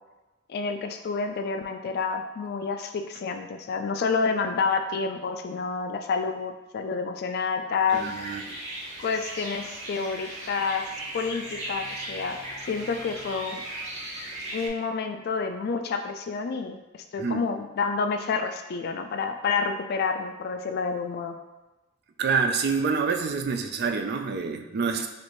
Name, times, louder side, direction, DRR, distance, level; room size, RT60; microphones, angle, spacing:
voice 1, 0.5-8.0 9.0-10.9 11.1-12.4 12.7-13.6 14.5-21.3, left 5 dB, 50° left, 6 dB, 0.3 m, -29 dB
sound 1, 7.9-14.7, right 1 dB, 35° right, 0.9 m, -37 dB
voice 2, 7.9-8.6 17.2-17.4 22.2-25.1, right 5 dB, 55° right, 5 dB, 0.4 m, -27 dB
4.3 x 2.5 x 3.0 m, 1.1 s
head